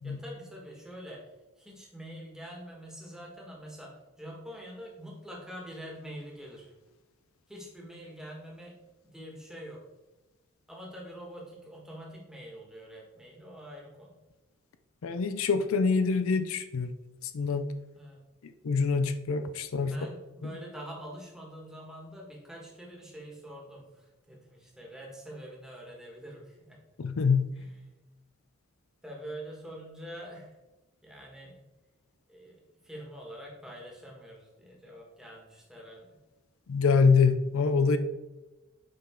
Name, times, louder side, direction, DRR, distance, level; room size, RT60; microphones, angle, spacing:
voice 1, 0.0-6.7 7.5-8.8 9.0-9.8 10.7-14.2 17.9-18.2 19.8-26.8 27.6-27.8 29.0-30.6 31.0-31.7 32.3-36.2, equal, 5° right, -3 dB, 1.8 m, -45 dB
voice 2, 15.0-16.9 17.2-17.6 18.6-19.9 27.0-27.5 36.7-38.0, left 5 dB, 85° left, 10 dB, 0.5 m, -25 dB
8.6 x 5.7 x 3.8 m, 1.1 s
head